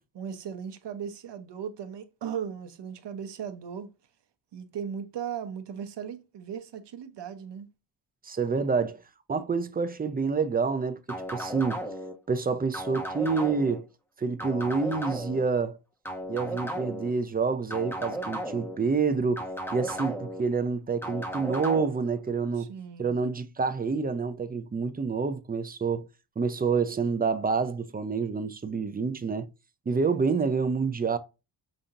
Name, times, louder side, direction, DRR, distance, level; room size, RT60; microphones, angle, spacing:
voice 1, 0.1-3.9 4.5-7.7 22.6-23.2, right 8 dB, 70° right, 0.8 m, -37 dB
voice 2, 8.2-9.0 9.3-11.8 12.3-13.9 14.2-15.8 16.3-26.1 26.4-29.5 29.9-31.2, right 5 dB, 20° right, 0.4 m, -28 dB
sound 1, 11.1-12.1 12.7-13.8 14.4-15.4 16.0-17.1 17.7-18.8 19.4-20.4 21.0-21.9, right 1 dB, 5° left, 1.1 m, -35 dB
5.2 x 2.7 x 2.4 m
wide cardioid pair, 100°, 44 cm